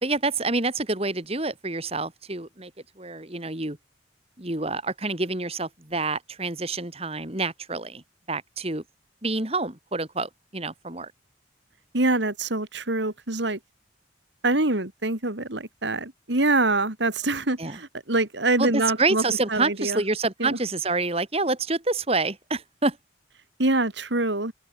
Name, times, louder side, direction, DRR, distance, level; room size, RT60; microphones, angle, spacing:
voice 1, 0.0-2.7 3.0-3.8 4.4-8.0 8.3-8.8 9.2-11.1 17.6-17.8 18.6-23.0, right 3 dB, 30° right, 2.5 m, -27 dB
voice 2, 11.9-13.6 14.4-19.2 19.5-20.0 20.4-20.6 23.6-24.5, right 2 dB, 70° right, 2.8 m, -25 dB
open air
head